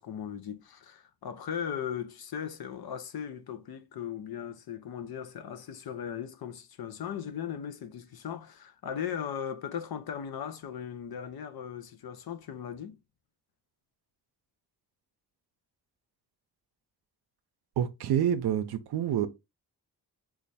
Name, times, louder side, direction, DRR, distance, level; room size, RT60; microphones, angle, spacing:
voice 1, 0.0-13.0, left 8 dB, 70° left, 0.6 m, -38 dB
voice 2, 17.8-19.3, right 10 dB, 80° right, 0.5 m, -27 dB
3.2 x 2.4 x 4.0 m
wide cardioid pair, 120°, 39 cm